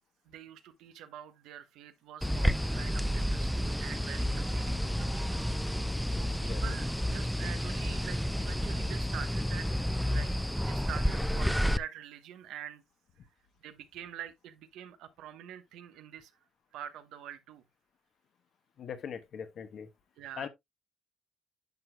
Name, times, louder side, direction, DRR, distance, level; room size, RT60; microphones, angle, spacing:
voice 1, 0.2-5.4 6.1-9.7 10.0-10.3 10.6-12.8 13.6-16.3 16.7-17.6 20.2-20.5, right 10 dB, 85° right, 1.1 m, -46 dB
sound 1, 2.2-11.8, equal, ahead, 0.4 m, -30 dB
voice 2, 18.8-19.9 20.4-20.5, left 7 dB, 60° left, 1.1 m, -40 dB
10.5 x 6.1 x 2.3 m
cardioid pair, 100°, 0 cm